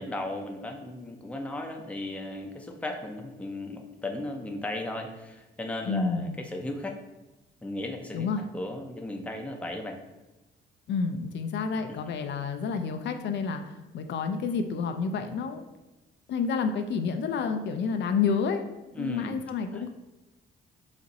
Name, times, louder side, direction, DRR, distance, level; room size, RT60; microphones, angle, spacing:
voice 1, 0.0-7.0 7.6-8.3 8.5-10.0 19.0-19.4 19.7-19.8, left 1 dB, 5° left, 3 dB, 0.5 m, -36 dB
voice 2, 5.9-6.4 8.1-8.4 10.9-15.6 16.3-18.6 19.0-19.9, left 5 dB, 65° left, 6 dB, 0.4 m, -29 dB
4.0 x 2.5 x 4.0 m, 1.0 s
cardioid pair, 90°, 20 cm